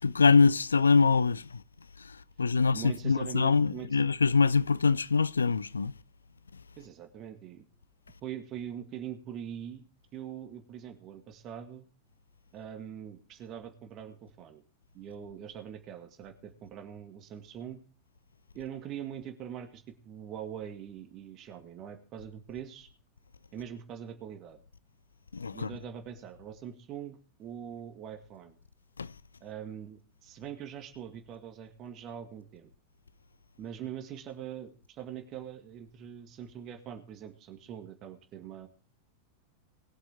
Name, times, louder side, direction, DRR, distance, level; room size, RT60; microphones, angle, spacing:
voice 1, 0.0-1.6 2.0-5.9 25.3-25.7 29.0-29.1, left 4 dB, 75° left, 0.4 m, -24 dB
voice 2, 2.6-4.1 6.8-7.6 8.2-9.8 10.1-11.9 12.5-14.6 14.9-17.8 18.5-22.9 23.5-24.6 25.5-28.6 29.4-32.7 33.6-38.7, right 9 dB, 35° right, 1.8 m, -43 dB
20.5 x 7.9 x 3.5 m
figure-of-eight pair, 90°, 0 cm